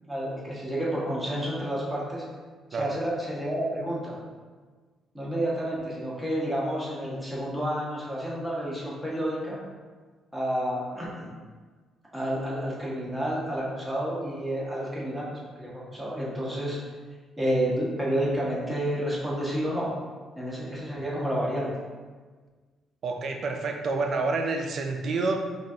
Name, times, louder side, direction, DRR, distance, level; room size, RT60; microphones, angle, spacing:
voice 1, 0.1-2.3 2.7-4.2 5.1-9.6 10.3-11.3 12.1-16.8 17.4-19.9 20.4-21.7, equal, 5° right, -6 dB, 1.2 m, -30 dB
voice 2, 23.0-25.4, right 3 dB, 60° right, 4 dB, 0.4 m, -28 dB
4.8 x 2.5 x 2.8 m, 1.4 s
cardioid pair, 90°, 0 cm